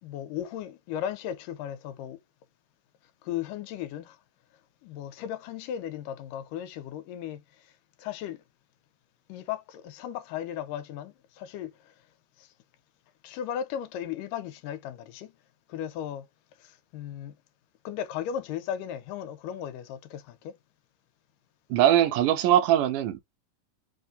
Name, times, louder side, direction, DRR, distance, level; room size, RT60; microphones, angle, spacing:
voice 1, 0.0-2.2 3.2-4.2 4.8-7.7 8.0-8.4 9.3-11.9 12.4-12.5 13.2-15.3 15.7-16.3 16.6-17.4 17.8-20.5, left 10 dB, 85° left, 2.3 m, -36 dB
voice 2, 21.7-23.2, right 11 dB, 75° right, 2.2 m, -21 dB
5.3 x 2.6 x 3.8 m
omnidirectional pair, 3.9 m